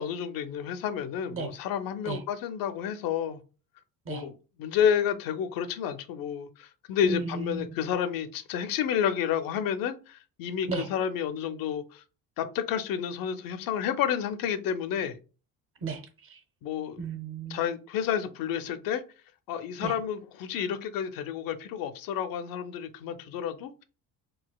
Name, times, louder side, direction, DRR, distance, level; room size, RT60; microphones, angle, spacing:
voice 1, 0.0-3.4 4.1-4.3 4.6-12.0 12.4-15.2 16.6-17.0 17.5-19.0 19.5-23.8, left 8 dB, 65° left, 0.5 m, -30 dB
voice 2, 7.0-7.7 10.7-10.9 15.8-16.4 17.0-17.7 19.8-20.0, right 4 dB, 35° right, 0.6 m, -34 dB
4.0 x 2.4 x 2.2 m
cardioid pair, 115°, 37 cm